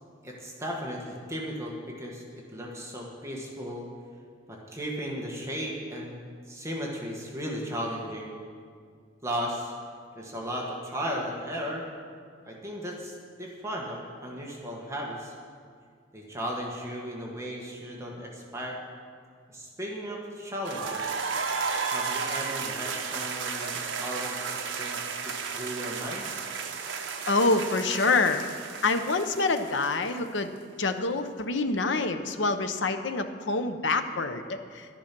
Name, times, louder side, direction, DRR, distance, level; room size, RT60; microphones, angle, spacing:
voice 1, 0.2-2.2 2.5-3.9 4.5-8.3 9.2-9.7 10.1-11.8 12.5-15.3 16.1-18.8 19.5-21.1 21.9-26.3, equal, 15° right, -2 dB, 1.4 m, -36 dB
sound 1, 20.6-30.4, right 5 dB, 70° right, 1.0 m, -33 dB
voice 2, 27.3-28.4 28.8-30.5 30.8-34.9, left 3 dB, 65° left, 8 dB, 0.8 m, -26 dB
12.0 x 10.0 x 6.0 m, 2.1 s
head